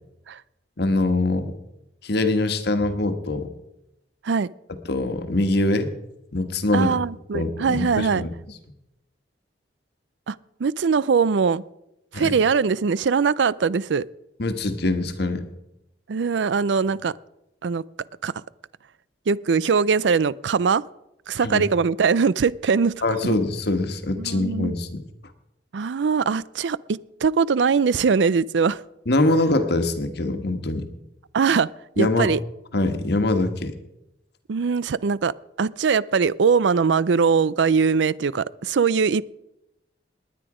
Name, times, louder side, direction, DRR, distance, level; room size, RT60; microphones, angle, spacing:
voice 1, 0.8-1.5 2.0-3.5 4.9-5.9 6.3-7.0 7.3-8.3 12.1-12.3 14.4-15.5 21.4-21.6 23.0-25.0 29.1-30.9 32.0-32.3 32.7-33.8, left 2 dB, 65° left, 8 dB, 1.3 m, -23 dB
voice 2, 6.7-8.2 10.3-11.6 12.1-14.1 16.1-17.1 17.6-17.8 18.2-18.3 19.3-20.8 21.3-23.0 24.2-24.7 25.7-28.8 31.3-31.7 32.0-32.4 34.5-39.2, right 5 dB, 75° right, 21 dB, 0.4 m, -21 dB
19.5 x 9.9 x 5.0 m, 0.88 s
head